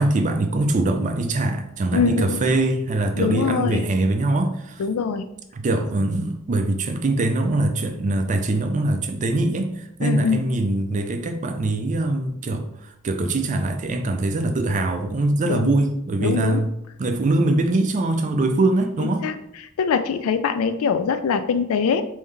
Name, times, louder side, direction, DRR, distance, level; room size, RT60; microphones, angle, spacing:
voice 1, 0.0-4.8 5.5-16.7 17.0-19.3, right 2 dB, 35° right, 0.4 m, -23 dB
voice 2, 1.9-2.4 3.2-3.9 4.8-5.2 10.0-10.4 15.4-15.7 16.2-16.6 19.0-19.3 19.8-22.0, left 6 dB, 65° left, 0.4 m, -23 dB
3.7 x 2.7 x 3.3 m
head